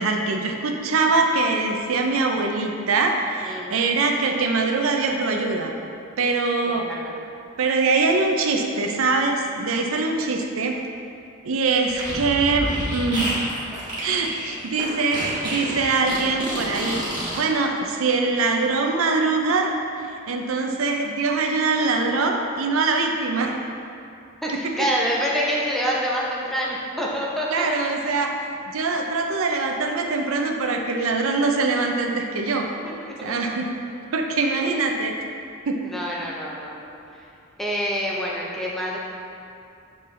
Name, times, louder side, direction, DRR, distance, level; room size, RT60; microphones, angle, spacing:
voice 1, 0.0-5.7 6.2-6.9 7.6-10.7 11.4-13.5 14.0-17.0 17.3-19.7 20.3-23.6 24.5-24.6 27.5-28.3 28.7-32.7 33.2-33.7 34.1-35.1 35.7-35.8, right 3 dB, 70° right, 2 dB, 0.5 m, -23 dB
voice 2, 6.7-7.1 9.7-9.8 24.4-27.7 32.8-33.3 34.4-34.7 35.8-36.9 37.6-39.0, equal, ahead, -5 dB, 0.6 m, -27 dB
Fart, 11.9-17.4, equal, 20° right, 1.5 m, -29 dB
6.7 x 4.4 x 3.2 m, 2.5 s
head